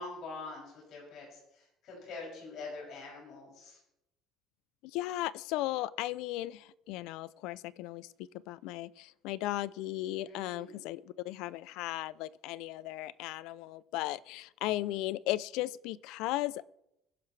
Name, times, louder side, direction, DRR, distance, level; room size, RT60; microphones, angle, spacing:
voice 1, 0.0-3.8 10.3-10.8, left 3 dB, 50° left, 6.9 m, -45 dB
voice 2, 4.8-16.6, left 16 dB, 75° left, 0.4 m, -36 dB
23.5 x 11.0 x 3.3 m
cardioid pair, 165°, 0 cm